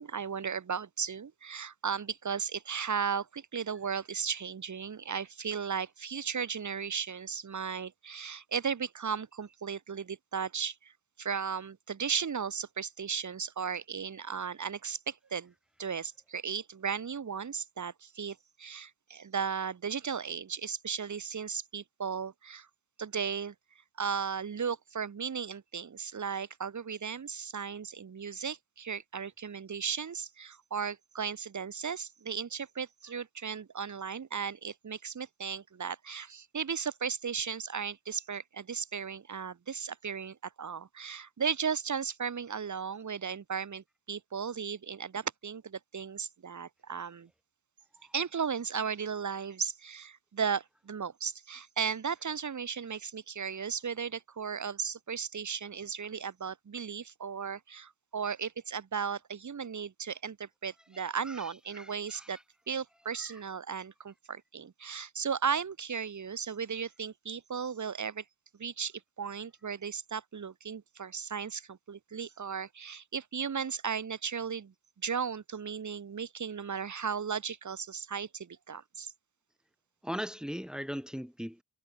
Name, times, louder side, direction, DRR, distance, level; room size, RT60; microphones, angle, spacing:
voice 1, 0.0-10.9 11.2-15.5 15.8-22.7 23.0-23.5 24.0-47.3 48.1-62.4 62.7-68.2 68.6-74.7 75.0-79.1, right 6 dB, 50° right, 2.9 m, -36 dB
voice 2, 60.9-62.4 63.2-63.3 80.0-81.6, equal, ahead, 2.2 m, -40 dB
wide cardioid pair, 110°, 37 cm